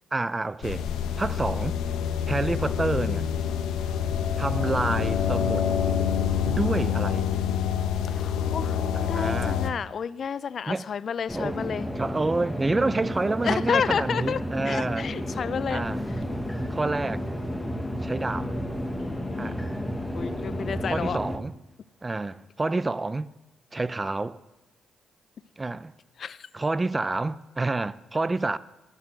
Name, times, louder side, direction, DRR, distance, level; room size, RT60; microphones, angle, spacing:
voice 1, 0.1-0.8 1.2-1.8 2.3-3.3 4.4-5.7 6.4-7.3 8.9-9.6 10.7-10.8 11.3-11.6 12.0-15.1 15.7-16.0 16.7-17.4 18.0-18.5 19.4-19.6 20.9-21.5 22.0-23.3 23.7-24.4 25.6-25.9 26.5-28.6, right 3 dB, 20° right, 0.5 m, -28 dB
sound 1, 0.6-9.7, left 8 dB, 85° left, 0.9 m, -27 dB
voice 2, 8.1-11.9 13.4-15.9 19.0-19.6 20.1-21.2 26.2-26.5, left 7 dB, 50° left, 0.5 m, -31 dB
sound 2, 11.3-21.4, equal, 5° left, 1.2 m, -32 dB
11.0 x 9.1 x 7.5 m
cardioid pair, 90°, 0 cm